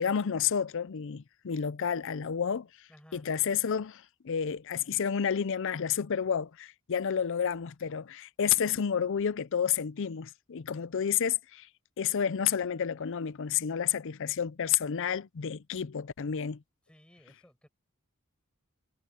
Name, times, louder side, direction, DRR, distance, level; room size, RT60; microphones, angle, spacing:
voice 1, 0.0-2.7 3.1-11.7 12.0-16.6, left 8 dB, 60° left, 0.5 m, -30 dB
voice 2, 2.9-3.3 16.9-17.7, equal, 5° left, 6.6 m, -57 dB
head